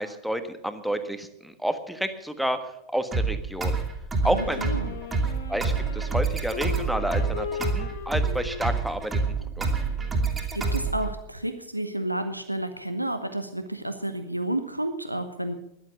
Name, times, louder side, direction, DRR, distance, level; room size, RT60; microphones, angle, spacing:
voice 1, 0.0-2.6 2.9-3.8 4.2-4.6 5.5-9.2 9.6-9.7, equal, ahead, 9 dB, 1.5 m, -30 dB
sound 1, 3.1-11.1, right 4 dB, 15° right, 2.6 m, -27 dB
voice 2, 4.2-5.0 10.5-15.5, right 1 dB, 90° right, 8 dB, 1.0 m, -31 dB
Wind instrument woodwind instrument, 4.4-11.1, left 6 dB, 65° left, 2.4 m, -39 dB
13.0 x 11.5 x 6.9 m, 0.80 s
figure-of-eight pair, 90°, 0 cm